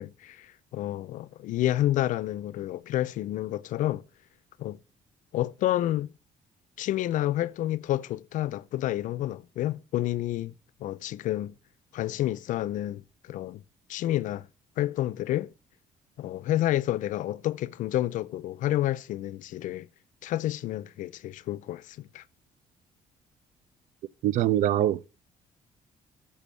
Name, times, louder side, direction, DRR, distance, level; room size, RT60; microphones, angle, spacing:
voice 1, 0.0-4.0 4.6-4.8 5.3-6.1 6.8-10.5 10.8-11.5 11.9-13.0 13.3-13.6 13.9-14.5 14.8-15.5 16.2-19.9 20.2-22.2, left 14 dB, 75° left, 0.4 m, -29 dB
voice 2, 24.2-25.1, right 12 dB, 70° right, 0.4 m, -23 dB
6.9 x 6.9 x 7.2 m
cardioid pair, 130°, 13 cm